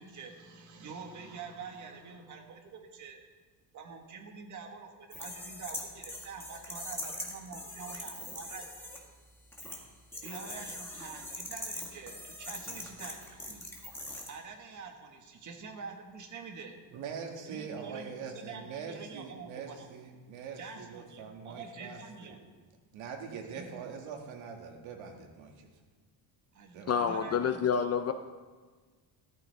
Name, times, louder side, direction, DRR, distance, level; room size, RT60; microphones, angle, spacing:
voice 1, 0.0-3.2 3.7-9.0 10.2-13.7 14.3-16.8 17.4-19.9 20.6-22.4 23.5-23.9 26.5-27.7, right 5 dB, 40° right, 2 dB, 1.5 m, -46 dB
sound 1, 5.1-9.0 9.5-9.8 10.1-14.3, left 1 dB, 5° left, 1.6 m, -42 dB
voice 2, 16.9-22.3 22.9-25.7 26.7-27.1, right 6 dB, 80° right, 2 dB, 2.0 m, -43 dB
voice 3, 26.9-28.1, left 7 dB, 35° left, 9 dB, 0.4 m, -28 dB
15.0 x 13.5 x 3.4 m, 1.4 s
cardioid pair, 175°, 47 cm